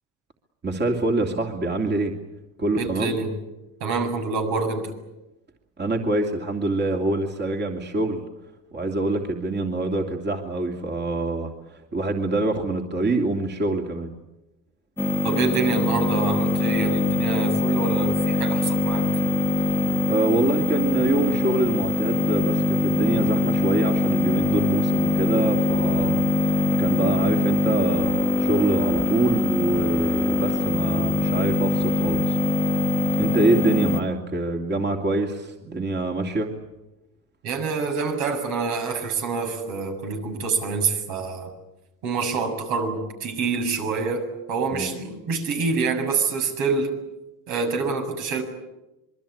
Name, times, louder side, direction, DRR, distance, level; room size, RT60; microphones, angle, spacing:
voice 1, 0.6-2.1 2.6-3.1 5.8-8.2 8.7-14.1 20.1-32.4 33.2-36.5 44.7-44.9, right 2 dB, 25° right, 2 dB, 2.8 m, -25 dB
voice 2, 2.7-3.3 3.8-4.9 15.2-19.1 37.4-41.5 42.0-46.9 47.5-48.4, right 4 dB, 75° right, 5 dB, 7.3 m, -26 dB
sound 1, 15.0-34.0, left 2 dB, 5° left, 1.6 m, -23 dB
26.5 x 23.0 x 8.8 m, 0.98 s
cardioid pair, 125°, 37 cm